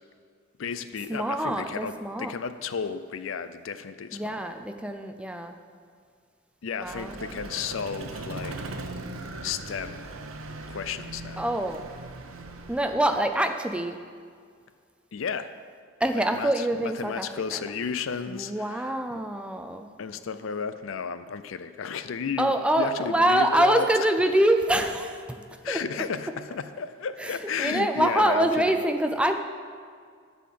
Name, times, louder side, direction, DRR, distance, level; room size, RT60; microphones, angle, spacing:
voice 1, 0.6-4.4 6.6-8.6 9.4-10.1 10.7-11.5 15.1-15.5 16.1-19.2 20.0-23.9 25.6-28.8, left 6 dB, 70° left, 12 dB, 0.5 m, -33 dB
voice 2, 1.1-2.3 4.1-5.6 6.8-7.2 11.4-11.8 12.7-14.0 16.0-17.6 18.3-19.9 22.4-25.4 25.7-25.8 27.2-29.3, right 1 dB, 5° right, 6 dB, 0.4 m, -25 dB
Vehicle, 6.8-13.2, right 2 dB, 85° right, 0.8 m, -39 dB
11.5 x 4.2 x 7.6 m, 2.1 s
head